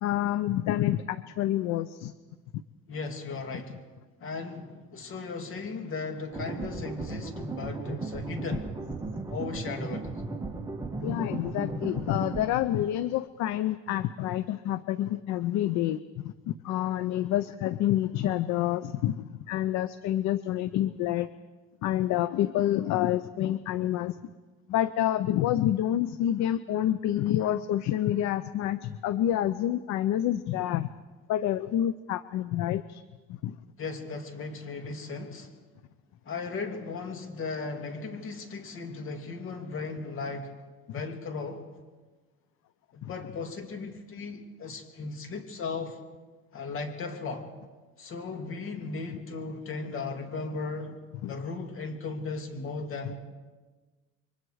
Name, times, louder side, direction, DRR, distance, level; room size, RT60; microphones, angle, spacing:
voice 1, 0.0-2.1 11.0-21.3 21.8-24.2 24.7-30.9 31.3-33.0 33.3-33.6 43.0-43.1 51.2-51.3, left 12 dB, 60° left, 0.7 m, -28 dB
voice 2, 2.9-3.8 4.2-8.7 9.3-10.1 33.8-35.6 36.2-40.5 40.9-41.6 42.9-46.0 46.5-47.5 48.0-51.0 51.3-53.2, left 4 dB, 40° left, 2.9 m, -36 dB
sound 1, 6.3-12.5, right 3 dB, 10° right, 1.6 m, -36 dB
28.5 x 23.5 x 4.9 m
cardioid pair, 135°, 32 cm